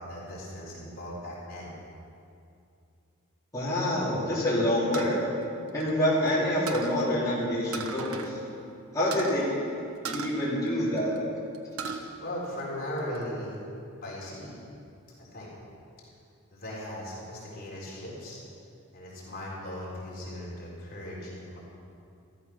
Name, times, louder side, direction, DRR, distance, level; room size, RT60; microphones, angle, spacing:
voice 1, 0.0-1.7 11.9-13.6 14.0-14.6 15.3-15.5 16.5-18.4 18.9-21.6, left 1 dB, 40° left, -5 dB, 3.9 m, -38 dB
voice 2, 3.5-5.2 5.7-8.4 8.9-9.7 10.1-11.1, left 1 dB, 15° left, -10 dB, 3.6 m, -27 dB
sound 1, 4.9-6.3 6.7-7.0 7.7-8.3 8.6-8.7 9.1-9.4 10.0-11.2 11.5-12.0 12.5-13.2, right 5 dB, 80° right, 1.1 m, -37 dB
14.0 x 14.0 x 6.0 m, 2.5 s
head